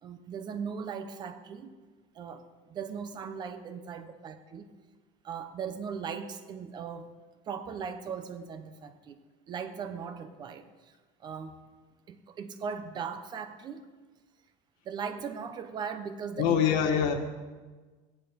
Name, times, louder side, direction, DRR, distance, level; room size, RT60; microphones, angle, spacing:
voice 1, 0.0-1.7 2.1-2.4 2.7-4.7 5.2-7.1 7.5-9.2 9.5-10.9 11.2-11.6 12.1-13.9 14.8-16.8, right 6 dB, 30° right, 9 dB, 0.8 m, -38 dB
voice 2, 16.4-17.1, left 8 dB, 65° left, 5 dB, 1.8 m, -24 dB
16.5 x 10.5 x 5.3 m, 1.3 s
cardioid pair, 175°, 15 cm